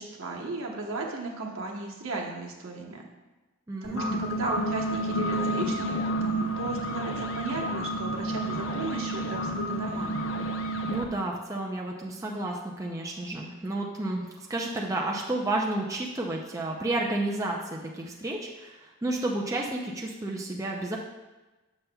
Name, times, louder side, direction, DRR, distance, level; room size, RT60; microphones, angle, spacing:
voice 1, 0.0-3.0 3.8-10.3, right 3 dB, 75° right, -1 dB, 1.0 m, -35 dB
voice 2, 3.7-4.2 10.9-21.0, right 2 dB, 15° right, -1 dB, 0.4 m, -31 dB
sound 1, 3.8-11.1, right 1 dB, 60° left, 0.6 m, -30 dB
7.1 x 6.7 x 2.2 m, 1.1 s
head